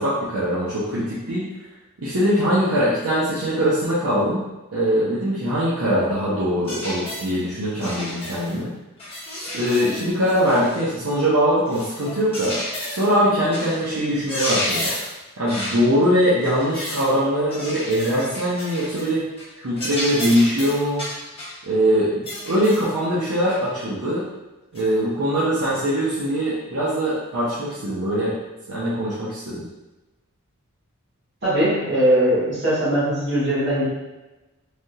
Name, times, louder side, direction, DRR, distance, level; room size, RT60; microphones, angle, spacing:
voice 1, 0.0-1.5 2.0-4.4 4.7-8.7 9.3-12.6 12.9-14.9 15.4-19.2 19.6-21.1 21.6-24.3 24.7-28.3 28.7-29.6, equal, 70° right, -9 dB, 0.7 m, -22 dB
sound 1, 6.7-7.3 7.8-8.6 9.0-10.9 11.7-13.1 13.5-13.8 14.1-15.2 15.5-15.9 16.4-17.1 17.5-19.1 19.4-19.5 19.8-21.6 22.3-22.9 23.5-23.6 24.7-24.9, left 1 dB, 25° left, 0.9 m, -31 dB
voice 2, 31.4-33.9, right 1 dB, 50° right, -11 dB, 1.4 m, -20 dB
3.4 x 2.7 x 2.3 m, 1.1 s
head